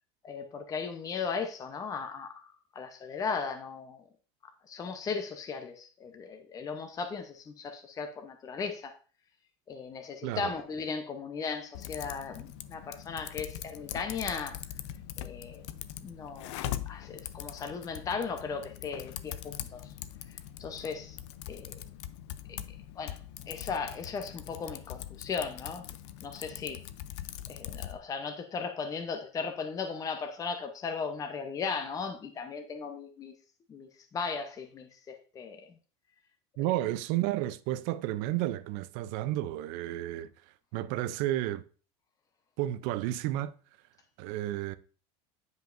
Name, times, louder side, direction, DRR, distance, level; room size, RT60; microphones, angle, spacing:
voice 1, 0.2-4.0 4.7-8.9 9.7-14.6 15.2-15.6 16.0-16.6 16.9-19.9 20.6-21.2 21.5-21.8 22.5-22.6 23.0-23.2 23.5-25.9 26.2-26.8 27.5-33.3 33.7-35.6 36.6-36.7, left 5 dB, 25° left, 0.7 m, -37 dB
Typing, 11.7-28.0, left 12 dB, 80° left, 0.5 m, -42 dB
voice 2, 36.6-40.3 40.7-41.7 42.6-43.5 44.2-44.8, right 14 dB, 65° right, 0.5 m, -31 dB
9.3 x 5.2 x 2.6 m
supercardioid pair, 135°, 15 cm